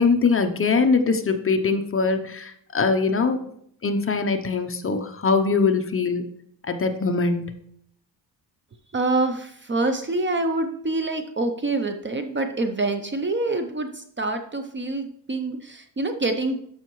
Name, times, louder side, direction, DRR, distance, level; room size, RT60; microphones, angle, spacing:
voice 1, 0.0-3.4 3.8-6.2 6.7-7.4, left 4 dB, 30° left, 7 dB, 0.7 m, -22 dB
voice 2, 8.9-16.6, right 2 dB, 25° right, 7 dB, 0.6 m, -26 dB
13.0 x 5.6 x 3.1 m, 0.68 s
cardioid pair, 145°, 45 cm